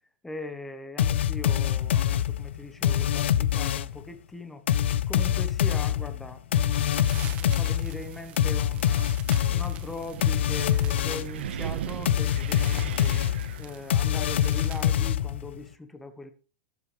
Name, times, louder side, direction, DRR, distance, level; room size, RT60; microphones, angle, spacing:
voice 1, 0.2-4.6 5.1-9.1 9.5-13.2 13.6-16.3, left 2 dB, 5° left, 1.1 m, -40 dB
sound 1, 1.0-4.0 4.7-11.4 12.0-15.6, left 10 dB, 80° left, 0.9 m, -25 dB
sound 2, 6.6-14.9, right 9 dB, 20° right, 1.4 m, -47 dB
Wind, 8.0-15.3, right 9 dB, 75° right, 1.7 m, -40 dB
19.5 x 8.1 x 3.4 m
supercardioid pair, 180°, 6 cm